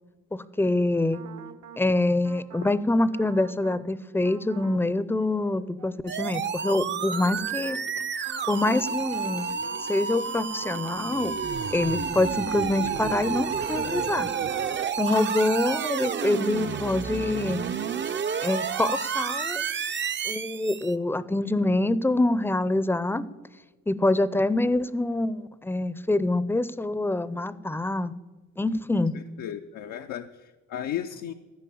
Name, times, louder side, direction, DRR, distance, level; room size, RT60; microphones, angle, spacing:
voice 1, 0.3-1.2 1.8-7.8 8.5-9.5 9.8-11.3 11.7-14.3 15.0-17.6 18.4-19.6 20.3-23.2 23.9-28.1 28.6-29.1, left 2 dB, 5° left, 16 dB, 0.5 m, -25 dB
sound 1, 1.1-1.8 2.2-2.8 3.1-3.8 4.2-4.8 5.2-12.2 12.6-15.8 16.2-16.8, right 7 dB, 65° right, 1.0 m, -46 dB
sound 2, 6.1-20.9, right 6 dB, 40° right, 0.6 m, -30 dB
voice 2, 29.1-31.3, left 10 dB, 85° left, 6 dB, 0.6 m, -35 dB
14.5 x 5.3 x 8.5 m, 1.3 s
cardioid pair, 90°, 30 cm